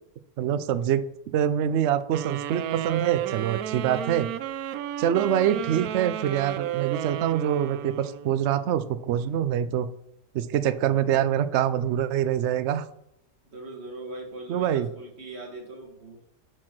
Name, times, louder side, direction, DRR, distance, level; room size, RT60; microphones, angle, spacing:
voice 1, 0.4-4.3 5.0-9.9 10.3-12.8 14.5-14.9, right 10 dB, 90° right, 13 dB, 0.6 m, -25 dB
sound 1, 2.1-8.5, right 12 dB, 70° right, 0.9 m, -32 dB
voice 2, 13.5-16.2, right 2 dB, 40° right, 1 dB, 2.1 m, -40 dB
10.5 x 4.6 x 5.9 m, 0.79 s
omnidirectional pair, 1.8 m